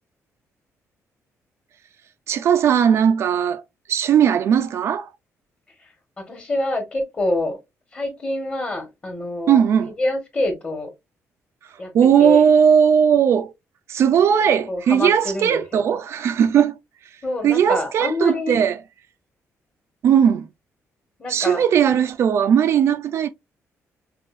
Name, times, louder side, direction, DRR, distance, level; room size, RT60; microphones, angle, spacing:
voice 1, 2.3-3.6 3.9-5.1 9.5-9.9 11.9-13.5 13.9-16.8 17.4-18.8 20.0-20.5 21.3-23.3, right 8 dB, 55° right, 0.5 m, -17 dB
voice 2, 6.2-7.6 7.9-9.6 10.0-10.9 11.8-11.9 12.2-12.4 14.7-15.8 17.2-18.7 21.2-21.6, left 1 dB, 25° left, 1.5 m, -26 dB
5.5 x 2.5 x 2.5 m
cardioid pair, 180°, 5 cm